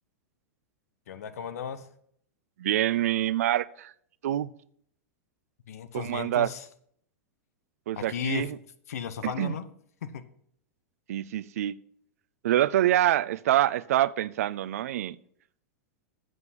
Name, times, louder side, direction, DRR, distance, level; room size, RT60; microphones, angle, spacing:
voice 1, 1.1-1.9 5.7-6.7 7.9-8.5 8.9-9.7 10.0-10.2, left 7 dB, 75° left, 1.0 m, -35 dB
voice 2, 2.6-3.9 4.2-4.5 5.9-6.5 7.9-8.6 9.2-9.5 11.1-11.8 12.4-15.2, right 13 dB, 75° right, 0.5 m, -26 dB
8.0 x 7.7 x 5.8 m
hypercardioid pair, 115°, 8 cm